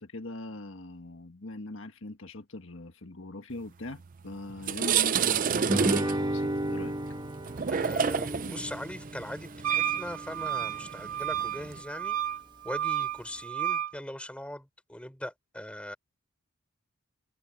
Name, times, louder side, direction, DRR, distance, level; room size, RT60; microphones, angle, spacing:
voice 1, 0.0-6.9, left 2 dB, 60° left, 1.6 m, -41 dB
sound 1, 4.0-4.1 4.5-11.8, right 7 dB, 40° right, 0.4 m, -30 dB
Guitar, 5.7-10.8, right 1 dB, 20° right, 1.8 m, -33 dB
voice 2, 7.7-12.2 12.6-16.0, left 1 dB, 5° left, 4.3 m, -40 dB
Wind instrument woodwind instrument, 9.6-13.9, right 11 dB, 70° right, 2.4 m, -31 dB
head